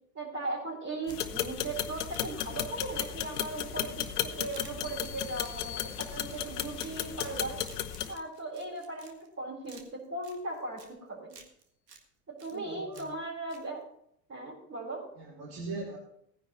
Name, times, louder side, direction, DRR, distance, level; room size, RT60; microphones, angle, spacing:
voice 1, 0.1-7.6 8.1-11.4 12.4-13.8 14.3-15.1, right 2 dB, 30° right, -7 dB, 4.6 m, -38 dB
sound 1, 0.9-1.5 2.1-2.4 3.0-9.3 9.6-10.9 11.3-12.0 12.4-13.2 13.5-13.6, right 5 dB, 85° right, 1.7 m, -55 dB
sound 2, 1.1-8.1, left 11 dB, 75° left, 1.0 m, -35 dB
sound 3, 4.8-6.7, left 12 dB, 30° left, 0.9 m, -47 dB
voice 2, 12.5-13.1 15.2-16.0, right 3 dB, 50° right, -3 dB, 3.1 m, -40 dB
18.0 x 9.9 x 3.1 m, 0.72 s
hypercardioid pair, 75°, 47 cm